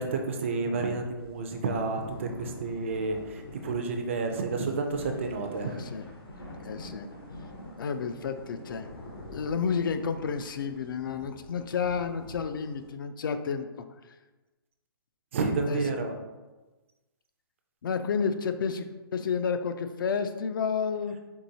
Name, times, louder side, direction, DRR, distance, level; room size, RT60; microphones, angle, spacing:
voice 1, 0.0-5.8 15.3-16.2, right 3 dB, 30° right, 4 dB, 0.3 m, -30 dB
sound 1, 1.2-12.9, left 1 dB, 75° left, 1.0 m, -47 dB
voice 2, 5.6-6.0 6.6-7.1 7.8-8.9 9.3-13.7 15.7-15.8 17.8-21.2, left 6 dB, 60° left, 9 dB, 0.4 m, -31 dB
4.5 x 3.0 x 2.7 m, 1.2 s
hypercardioid pair, 170°, 13 cm